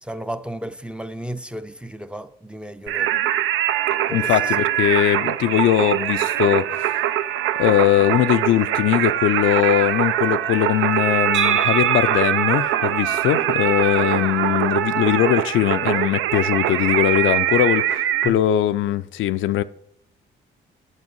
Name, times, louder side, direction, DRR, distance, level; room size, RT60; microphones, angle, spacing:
voice 1, 0.0-3.2 4.1-4.5 18.2-18.4, right 1 dB, 5° right, 0.5 m, -33 dB
Singing, 2.9-18.3, right 12 dB, 85° right, 0.5 m, -22 dB
voice 2, 4.1-6.9 7.6-19.6, left 12 dB, 75° left, 0.4 m, -20 dB
sound 1, 11.3-15.1, right 8 dB, 65° right, 1.3 m, -29 dB
8.1 x 7.2 x 5.2 m
cardioid pair, 90°, 20 cm